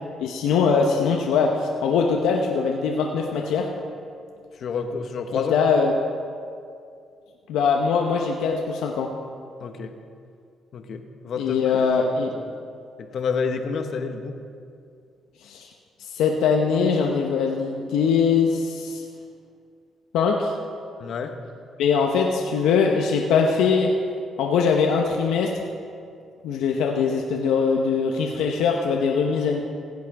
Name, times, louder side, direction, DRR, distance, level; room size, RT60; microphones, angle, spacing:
voice 1, 0.2-3.7 5.5-5.9 7.5-9.1 11.4-12.3 15.4-15.7 16.1-19.0 20.1-20.5 21.8-23.9 24.4-25.5 26.4-29.6, left 5 dB, 90° left, 1 dB, 0.8 m, -22 dB
voice 2, 4.6-5.6 9.6-9.9 10.7-11.7 12.3-12.5 13.0-14.4 21.0-21.3, left 5 dB, 60° left, 6 dB, 1.0 m, -29 dB
16.5 x 8.3 x 4.7 m, 2.3 s
cardioid pair, 90°, 0 cm